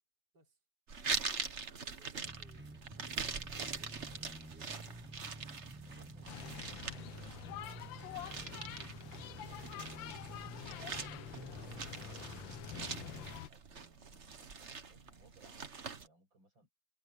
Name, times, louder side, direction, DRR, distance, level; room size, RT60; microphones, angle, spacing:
sound 1, 0.9-16.1, right 5 dB, 40° right, 1.6 m, -43 dB
voice 1, 1.6-3.2 3.6-5.1, right 2 dB, 60° right, 5.4 m, -68 dB
sound 2, 2.2-13.4, right 1 dB, 15° right, 0.4 m, -51 dB
voice 2, 5.9-13.1 13.5-16.7, right 2 dB, 90° right, 8.7 m, -66 dB
sound 3, 6.3-13.5, left 13 dB, 85° left, 1.5 m, -47 dB
omnidirectional pair, 2.0 m